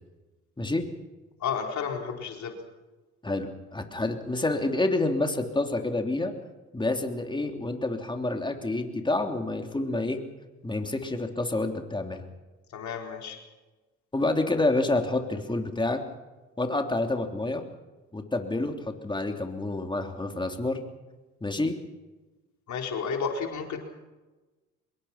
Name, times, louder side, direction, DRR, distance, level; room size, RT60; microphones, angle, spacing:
voice 1, 1.4-2.6 12.7-13.4 22.7-23.8, left 6 dB, 70° left, 2 dB, 4.5 m, -32 dB
voice 2, 3.2-6.3 6.7-10.2 10.6-12.2 14.1-16.0 16.6-17.6 18.1-20.8 21.4-21.7, left 2 dB, 15° left, 4 dB, 3.2 m, -28 dB
25.0 x 22.0 x 5.9 m, 1.2 s
cardioid pair, 90°, 30 cm